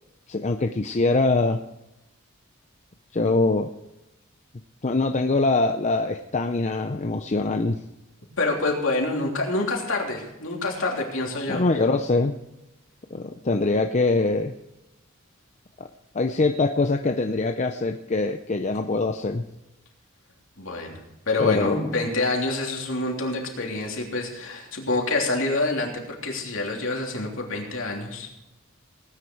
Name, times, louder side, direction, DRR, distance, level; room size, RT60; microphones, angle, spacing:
voice 1, 0.3-1.6 3.1-3.7 4.8-7.8 11.5-12.3 13.1-14.5 15.8-15.9 16.1-19.4 21.4-22.0, left 3 dB, 35° left, 6 dB, 0.6 m, -23 dB
voice 2, 8.4-11.6 20.6-28.3, left 2 dB, 65° left, 0 dB, 3.2 m, -27 dB
18.5 x 9.7 x 4.6 m, 0.93 s
head